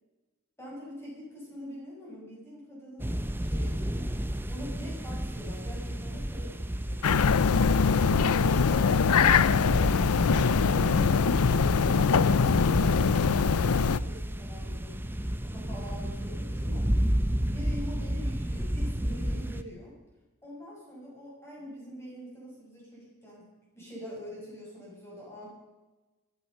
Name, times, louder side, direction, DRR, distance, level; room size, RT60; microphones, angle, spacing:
voice 1, 0.6-4.2 4.5-7.3 8.4-17.0 17.5-20.0 20.4-25.5, equal, 10° left, -5 dB, 7.4 m, -44 dB
sound 1, 3.0-19.6, equal, 10° right, 0.7 m, -32 dB
sound 2, 7.0-14.0, left 5 dB, 85° left, 0.6 m, -23 dB
16.0 x 12.5 x 6.7 m, 1.1 s
head